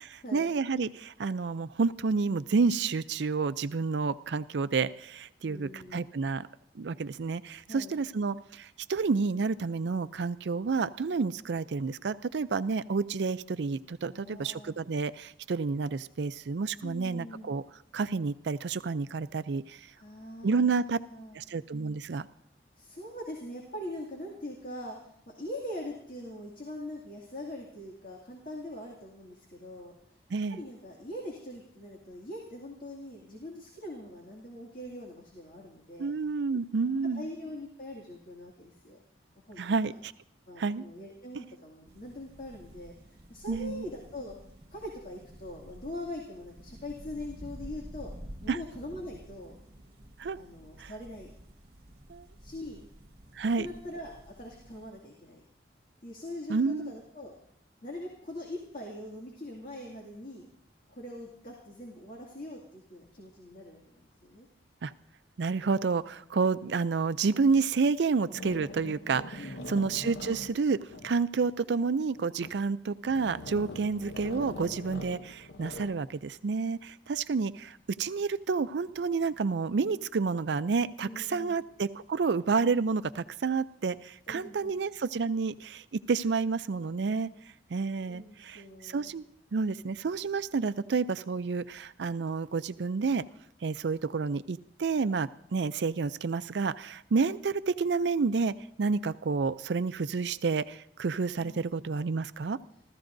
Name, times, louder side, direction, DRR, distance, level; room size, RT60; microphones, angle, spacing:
voice 1, 0.0-6.5 6.8-17.6 17.9-19.8 20.4-21.0 21.3-22.3 30.3-30.6 36.0-37.3 39.6-40.1 40.6-40.8 43.5-43.8 48.5-48.6 50.2-50.4 50.8-50.9 52.1-52.3 53.4-53.7 56.5-56.9 64.8-64.9 65.4-87.3 87.7-89.2 89.5-93.2 93.6-102.6, right 4 dB, 75° right, 14 dB, 0.4 m, -30 dB
voice 2, 5.4-6.1 7.7-8.0 14.1-14.7 16.8-17.5 20.0-21.4 22.8-29.9 30.5-36.1 37.1-39.0 39.5-40.0 40.5-44.4 44.7-48.1 48.4-49.6 50.4-51.3 52.4-52.9 53.4-55.4 56.0-57.3 57.8-60.5 60.9-64.5 69.4-70.1 81.0-81.6 84.3-84.7 87.3-87.4 88.1-89.2 101.4-101.7, left 1 dB, 50° left, -2 dB, 2.3 m, -42 dB
sound 1, 41.9-54.9, equal, 55° right, 1.5 m, -50 dB
sound 2, 67.5-67.7 68.3-71.5 72.2-72.7 73.0-76.1, left 2 dB, 75° left, 0.8 m, -43 dB
29.5 x 14.0 x 2.6 m, 0.71 s
head